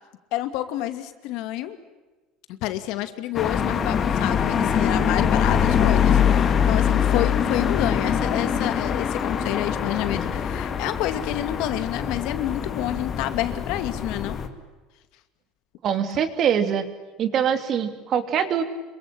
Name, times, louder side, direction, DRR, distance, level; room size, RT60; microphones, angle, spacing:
voice 1, 0.3-1.8 2.6-14.4, left 14 dB, 65° left, 10 dB, 2.5 m, -29 dB
sound 1, 3.3-14.5, left 7 dB, 30° left, 2.3 m, -23 dB
voice 2, 15.8-16.8 17.2-18.6, right 8 dB, 40° right, 10 dB, 2.9 m, -23 dB
27.0 x 24.0 x 8.9 m, 1.2 s
cardioid pair, 150°, 0 cm